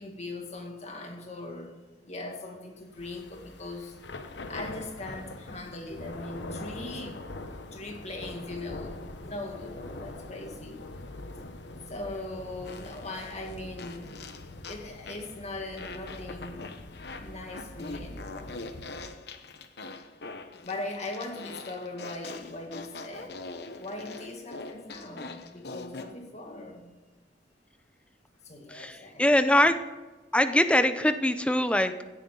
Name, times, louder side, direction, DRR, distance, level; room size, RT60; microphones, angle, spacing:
voice 1, 0.0-1.8 2.0-4.0 4.5-7.2 7.7-10.9 11.9-14.3 14.7-16.7 17.1-18.6 20.6-23.4 23.8-26.9 28.4-29.7, left 2 dB, 40° left, 2 dB, 2.2 m, -40 dB
Thunder / Rain, 2.9-19.2, left 2 dB, 90° left, 1.0 m, -43 dB
Fart, 12.6-15.3 15.8-26.1, left 3 dB, 65° left, 1.0 m, -43 dB
voice 2, 28.7-29.8 30.3-32.0, left 1 dB, 5° left, 10 dB, 0.7 m, -23 dB
17.0 x 10.5 x 3.9 m, 1.3 s
head